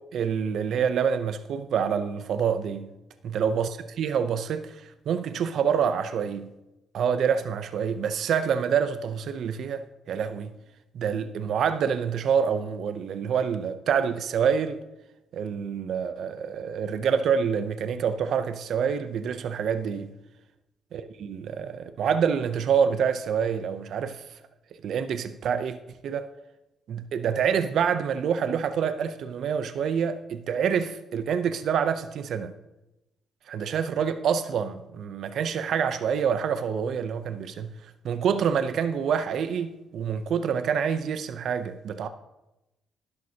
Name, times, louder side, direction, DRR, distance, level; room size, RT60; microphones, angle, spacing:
voice 1, 0.1-2.9 3.2-6.5 6.9-10.5 10.9-14.8 15.3-20.1 20.9-24.2 24.8-25.8 26.0-26.3 26.9-32.5 33.5-37.7 38.0-42.1, right 7 dB, 70° right, 0.6 m, -27 dB
11.5 x 11.0 x 2.8 m
cardioid pair, 90°, 0 cm